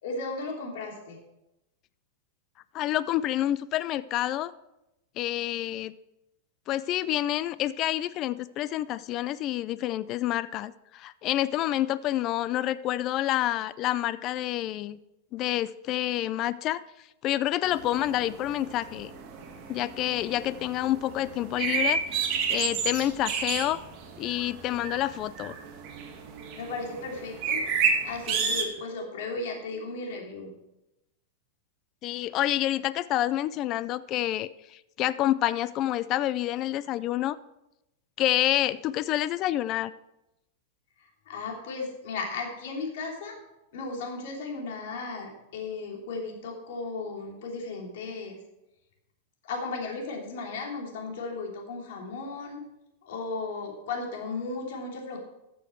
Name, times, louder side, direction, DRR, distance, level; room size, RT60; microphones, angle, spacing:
voice 1, 0.0-1.2 26.5-27.6 28.0-30.5 41.0-43.4 43.7-48.4 49.4-52.6 53.0-55.2, left 3 dB, 65° left, 0 dB, 3.0 m, -35 dB
voice 2, 2.7-4.5 5.2-5.9 6.7-15.0 15.3-16.8 17.2-19.1 19.7-22.0 22.5-23.8 24.2-25.5 32.0-37.4 38.2-39.9, left 13 dB, 35° left, 17 dB, 0.4 m, -28 dB
sound 1, 17.6-28.6, right 5 dB, 40° right, 1.9 m, -32 dB
13.5 x 7.0 x 4.5 m, 0.90 s
supercardioid pair, 150°, 0 cm